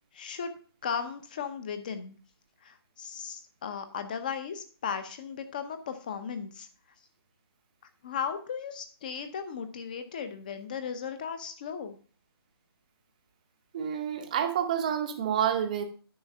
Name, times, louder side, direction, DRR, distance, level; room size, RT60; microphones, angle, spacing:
voice 1, 0.1-0.5 0.8-2.1 2.6-6.7 8.0-12.0, left 7 dB, 20° left, 9 dB, 0.7 m, -36 dB
voice 2, 13.7-15.8, right 9 dB, 20° right, 6 dB, 0.7 m, -28 dB
9.5 x 5.8 x 5.5 m, 0.40 s
hypercardioid pair, 170°, 13 cm